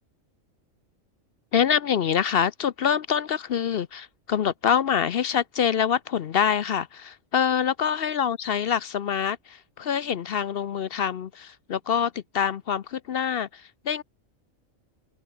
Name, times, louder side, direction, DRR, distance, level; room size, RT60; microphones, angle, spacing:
voice 1, 1.5-14.0, left 8 dB, 55° left, 0.7 m, -25 dB
open air
omnidirectional pair, 1.4 m